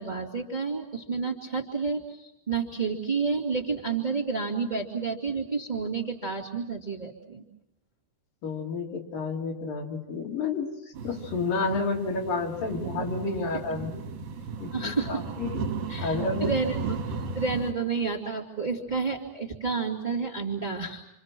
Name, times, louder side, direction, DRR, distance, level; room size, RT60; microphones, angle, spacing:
voice 1, 0.0-7.4 14.7-15.2 15.9-17.0 17.3-21.0, right 4 dB, 15° right, -1 dB, 1.8 m, -30 dB
voice 2, 8.4-10.7 11.0-14.0 14.6-15.6 16.0-16.5, left 3 dB, 70° left, 0 dB, 4.3 m, -30 dB
sound 1, 10.9-17.7, right 4 dB, 65° right, 2.9 m, -35 dB
28.0 x 28.0 x 6.0 m, 0.80 s
omnidirectional pair, 4.2 m